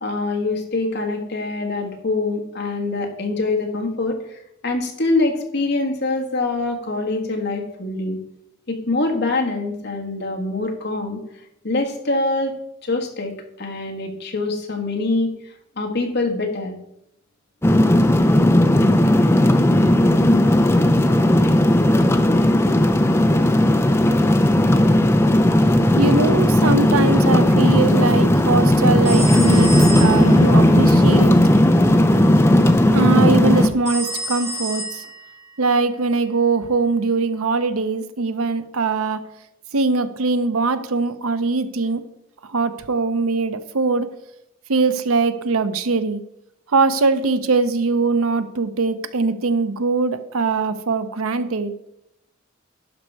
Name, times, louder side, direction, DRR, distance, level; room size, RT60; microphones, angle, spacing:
voice 1, 0.0-8.2 8.7-11.2 11.6-12.5 12.8-15.3 15.8-16.8, left 2 dB, 50° left, 3 dB, 1.4 m, -24 dB
sound 1, 17.6-33.7, left 1 dB, 10° left, 0.4 m, -15 dB
voice 2, 26.0-29.7 30.0-31.4 32.9-35.1 35.6-39.2 39.7-42.0 42.4-44.1 44.7-46.2 46.7-51.7, right 3 dB, 90° right, 12 dB, 0.7 m, -21 dB
sound 2, 29.1-31.4, left 1 dB, 30° left, 1.0 m, -21 dB
sound 3, 29.1-30.4 33.9-35.4, equal, 15° right, 1.0 m, -29 dB
11.0 x 5.3 x 4.6 m, 0.82 s
head